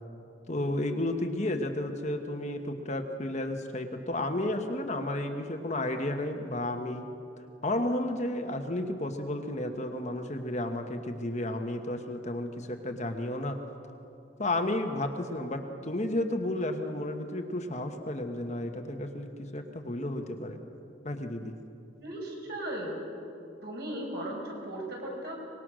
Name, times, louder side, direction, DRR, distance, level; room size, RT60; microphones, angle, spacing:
voice 1, 0.5-7.1 7.6-13.6 14.4-20.6 21.0-21.5, left 1 dB, 35° left, 5 dB, 1.3 m, -32 dB
voice 2, 22.0-23.0 23.6-25.3, right 1 dB, 55° right, -1 dB, 5.9 m, -37 dB
24.5 x 21.0 x 6.3 m, 2.7 s
head